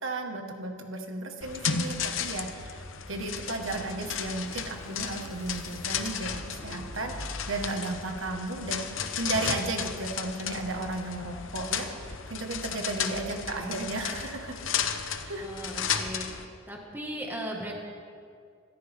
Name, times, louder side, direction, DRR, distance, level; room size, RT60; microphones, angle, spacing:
voice 1, 0.0-7.2 7.5-8.9 9.2-14.6 15.3-15.5, right 2 dB, 85° right, 3 dB, 1.7 m, -34 dB
sound 1, 1.4-16.4, left 7 dB, 85° left, 1.0 m, -34 dB
sound 2, 3.3-7.6, left 1 dB, 15° left, 3.3 m, -47 dB
voice 2, 13.0-13.8 15.4-16.3 16.7-17.8, equal, 10° right, -1 dB, 1.9 m, -38 dB
26.0 x 13.5 x 3.7 m, 2.3 s
head